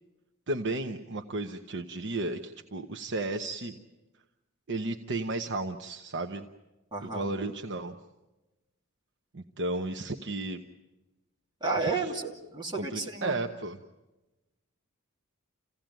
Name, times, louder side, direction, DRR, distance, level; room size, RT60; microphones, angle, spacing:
voice 1, 0.5-3.8 4.7-6.4 7.0-7.9 9.3-10.6 11.8-12.1 12.7-13.8, right 2 dB, 55° right, 5 dB, 1.0 m, -34 dB
voice 2, 6.9-7.2 11.6-13.3, right 3 dB, 20° right, -1 dB, 2.9 m, -32 dB
28.5 x 16.5 x 9.1 m, 1.1 s
head